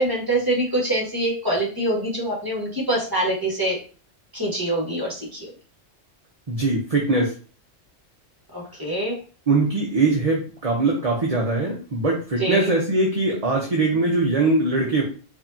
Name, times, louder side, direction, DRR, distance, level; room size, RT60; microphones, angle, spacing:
voice 1, 0.0-3.8 4.3-5.4 8.5-9.1 12.4-12.7, right 1 dB, 20° right, -4 dB, 1.7 m, -24 dB
voice 2, 6.5-7.3 9.5-15.0, right 2 dB, 35° right, -2 dB, 0.8 m, -21 dB
4.8 x 2.9 x 2.8 m, 0.37 s
omnidirectional pair, 1.2 m